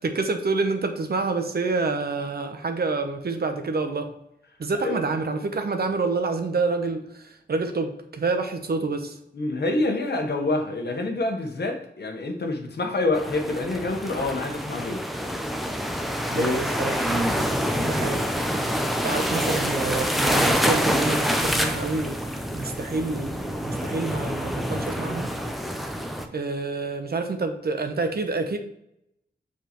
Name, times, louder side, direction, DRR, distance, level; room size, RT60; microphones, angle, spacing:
voice 1, 0.0-4.1 4.6-9.2 16.3-17.5 17.8-18.2 18.7-22.2 22.5-25.3 26.3-28.6, right 3 dB, 60° right, 7 dB, 0.8 m, -28 dB
voice 2, 9.3-15.0 16.3-16.5 17.0-17.4 17.7-18.1, left 2 dB, 65° left, 3 dB, 1.1 m, -27 dB
sound 1, 13.1-26.3, equal, ahead, 0.6 m, -26 dB
7.3 x 4.8 x 3.0 m, 0.77 s
wide cardioid pair, 100°, 18 cm